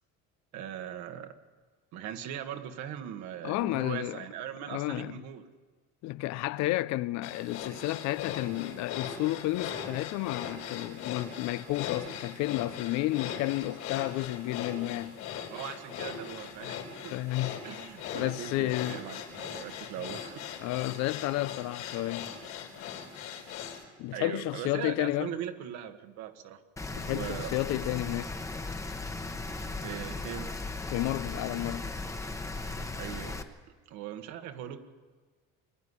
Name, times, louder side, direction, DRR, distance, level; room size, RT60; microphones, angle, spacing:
voice 1, 0.5-1.4 1.9-5.5 15.5-17.2 17.6-20.4 24.1-26.6 27.1-27.5 29.6-30.5 33.0-33.4 33.9-34.8, right 10 dB, 70° right, 1.7 m, -40 dB
voice 2, 3.4-4.3 4.7-5.2 6.0-15.2 17.1-17.6 18.1-19.0 20.6-22.3 24.0-25.3 26.9-28.3 30.9-31.9, left 17 dB, 65° left, 0.6 m, -31 dB
sound 1, 7.2-23.8, left 8 dB, 85° left, 4.0 m, -40 dB
Rain, 26.8-33.4, left 3 dB, 10° left, 1.1 m, -37 dB
24.0 x 11.5 x 9.8 m
cardioid pair, 135°, 29 cm